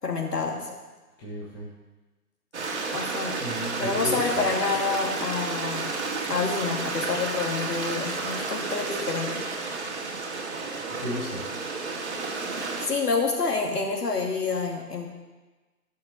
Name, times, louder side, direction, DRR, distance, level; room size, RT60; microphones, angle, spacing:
voice 1, 0.0-0.7 2.9-3.3 3.8-5.9 6.3-9.4 12.9-15.1, left 4 dB, 75° left, 0 dB, 2.7 m, -28 dB
voice 2, 1.2-1.7 3.4-4.4 10.9-11.4, left 1 dB, 15° left, -7 dB, 1.5 m, -34 dB
Stream, 2.5-12.9, right 3 dB, 45° right, 1.7 m, -31 dB
11.5 x 6.6 x 6.2 m, 1.2 s
figure-of-eight pair, 150°, 47 cm